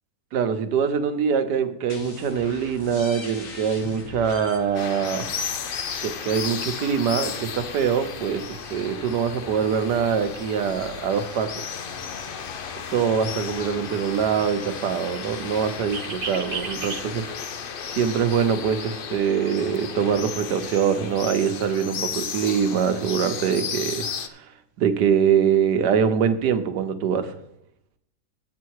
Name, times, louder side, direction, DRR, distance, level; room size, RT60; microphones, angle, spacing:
voice 1, 0.3-5.2 6.0-11.5 12.9-17.3 17.9-24.0 24.4-24.5 24.8-27.3, right 7 dB, 80° right, 8 dB, 1.5 m, -23 dB
sound 1, 1.9-7.3, left 4 dB, 55° left, 1.6 m, -41 dB
sound 2, 4.7-24.3, left 7 dB, 70° left, 0.5 m, -34 dB
sound 3, 8.3-17.0, right 5 dB, 40° right, 1.4 m, -41 dB
10.5 x 8.0 x 4.7 m, 0.77 s
omnidirectional pair, 1.8 m